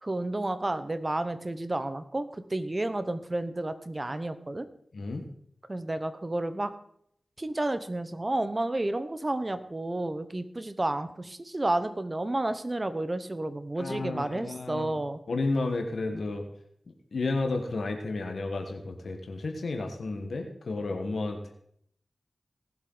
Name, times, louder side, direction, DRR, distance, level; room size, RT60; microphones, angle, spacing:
voice 1, 0.0-4.7 5.7-6.7 7.4-15.2, right 2 dB, 35° right, 11 dB, 1.1 m, -31 dB
voice 2, 4.9-5.2 13.8-15.0 15.3-16.4 17.1-21.5, left 3 dB, 80° left, 5 dB, 1.4 m, -32 dB
18.0 x 7.8 x 4.0 m, 0.67 s
cardioid pair, 40°, 0 cm